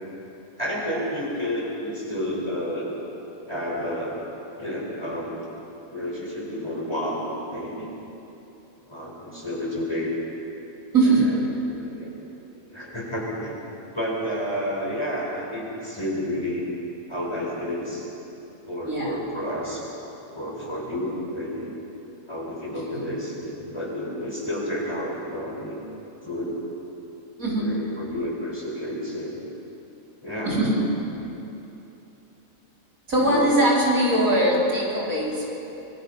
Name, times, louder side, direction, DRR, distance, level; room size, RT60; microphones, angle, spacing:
voice 1, 0.6-3.0 3.5-4.3 4.6-5.4 5.9-7.9 8.8-10.2 11.0-11.4 11.6-12.3 12.5-13.7 13.9-16.7 17.1-18.1 18.7-19.8 20.3-21.7 22.3-25.8 26.2-26.6 27.6-29.4 30.2-30.8 33.2-33.5, equal, 20° left, -3 dB, 4.7 m, -30 dB
voice 2, 10.9-11.4 18.9-19.2 22.9-23.2 27.4-27.7 30.4-30.9 33.1-35.5, right 1 dB, 70° right, -4 dB, 4.1 m, -21 dB
25.5 x 23.0 x 5.3 m, 3.0 s
omnidirectional pair, 1.5 m